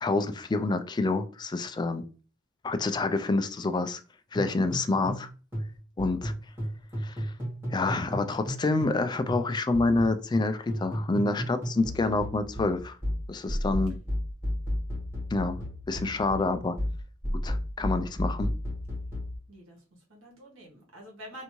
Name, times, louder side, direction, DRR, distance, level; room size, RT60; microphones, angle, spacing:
voice 1, 0.0-2.0 2.6-4.0 4.3-5.3 6.0-6.3 7.0-7.3 7.7-13.0 13.3-14.0 15.3-16.8 17.4-18.5, left 3 dB, 20° left, 0.3 m, -27 dB
sound 1, 4.3-9.0 9.3-19.4, equal, 10° right, 1.9 m, -33 dB
voice 2, 19.5-21.4, equal, 75° right, 1.3 m, -47 dB
3.4 x 2.7 x 3.0 m
head